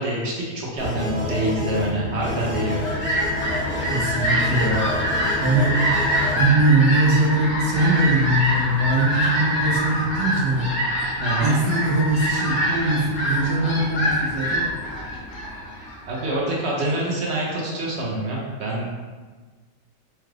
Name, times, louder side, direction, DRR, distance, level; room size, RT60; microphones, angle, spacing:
voice 1, 0.0-2.8 11.2-11.6 16.0-18.9, right 1 dB, 55° right, -4 dB, 0.8 m, -26 dB
sound 1, 0.8-6.4, left 2 dB, 15° left, 0.4 m, -29 dB
Fowl, 2.4-16.4, equal, 90° left, 1.8 m, -25 dB
voice 2, 3.8-4.9 5.4-5.8 6.3-10.7 11.4-14.7, right 2 dB, 70° right, -3 dB, 1.2 m, -21 dB
4.5 x 2.4 x 3.2 m, 1.4 s
omnidirectional pair, 1.8 m